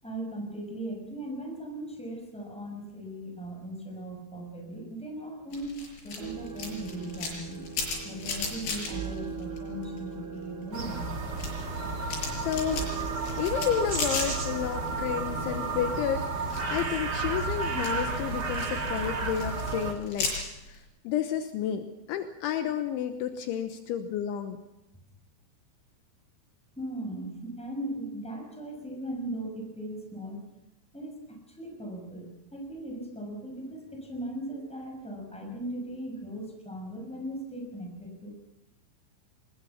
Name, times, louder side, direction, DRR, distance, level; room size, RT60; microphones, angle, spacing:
voice 1, 0.0-7.6 8.0-11.1 26.8-30.4 30.9-38.3, right 1 dB, ahead, 1 dB, 5.6 m, -38 dB
sound 1, 5.5-10.1 10.4-14.9 15.2-15.8 16.3-20.8, left 4 dB, 50° left, 7.8 m, -36 dB
sound 2, 6.2-16.2, right 6 dB, 75° right, 5.9 m, -41 dB
sound 3, 10.7-19.9, right 3 dB, 55° right, 1.1 m, -32 dB
voice 2, 12.4-12.9 13.4-20.3 20.7-24.6, left 9 dB, 75° left, 8 dB, 3.3 m, -31 dB
23.0 x 20.5 x 7.3 m, 0.96 s
omnidirectional pair, 5.8 m